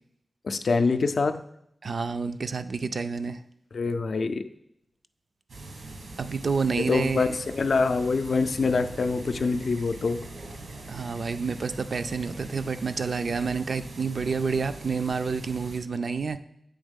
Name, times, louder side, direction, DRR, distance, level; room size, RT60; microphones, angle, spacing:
voice 1, 0.4-1.4 3.7-4.4 6.9-10.2, left 4 dB, 65° left, 9 dB, 0.4 m, -25 dB
voice 2, 1.8-3.4 6.2-7.3 10.9-16.4, right 5 dB, 60° right, 10 dB, 0.3 m, -29 dB
sound 1, 5.5-15.8, right 2 dB, 85° right, 1.1 m, -42 dB
7.8 x 3.6 x 5.2 m, 0.75 s
wide cardioid pair, 120°, 0 cm